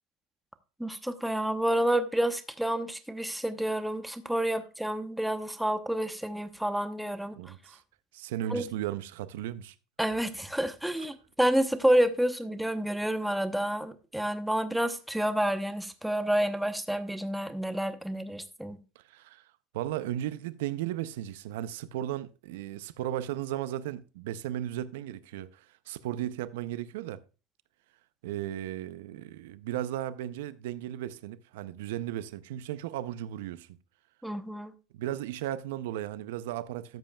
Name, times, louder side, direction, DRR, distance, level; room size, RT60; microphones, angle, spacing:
voice 1, 0.8-7.5 8.5-8.7 10.0-18.8 34.2-34.7, right 1 dB, ahead, 0.8 m, -29 dB
voice 2, 7.3-7.8 8.1-9.8 19.0-19.5 19.7-27.2 28.2-33.7 34.9-37.0, right 12 dB, 90° right, 0.5 m, -35 dB
13.5 x 7.6 x 2.3 m
supercardioid pair, 140°, 0 cm